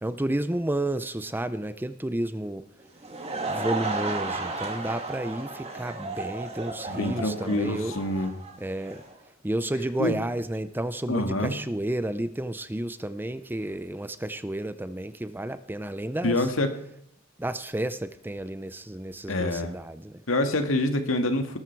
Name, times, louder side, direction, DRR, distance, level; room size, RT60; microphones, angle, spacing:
voice 1, 0.0-2.6 3.3-7.9 8.6-9.0 9.4-16.5 17.4-20.2, right 1 dB, 10° right, 12 dB, 0.5 m, -31 dB
Laughter / Crowd, 2.8-9.1, right 3 dB, 30° right, 2.4 m, -34 dB
voice 2, 6.9-8.3 10.0-10.1 11.1-11.5 16.2-16.7 19.3-19.7 20.3-21.6, left 1 dB, 70° left, 6 dB, 2.0 m, -26 dB
19.0 x 13.0 x 4.7 m, 0.74 s
head